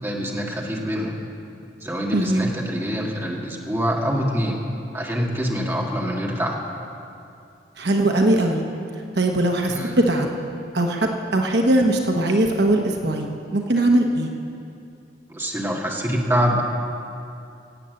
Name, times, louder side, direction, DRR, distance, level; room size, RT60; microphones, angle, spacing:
voice 1, 0.0-1.2 1.8-4.6 4.9-6.6 9.7-10.0 15.3-16.6, equal, 15° right, -2 dB, 1.7 m, -25 dB
voice 2, 2.1-2.5 7.8-8.6 9.1-10.3 10.7-14.3, right 1 dB, 65° right, 2 dB, 1.1 m, -20 dB
17.0 x 8.5 x 7.7 m, 2.6 s
head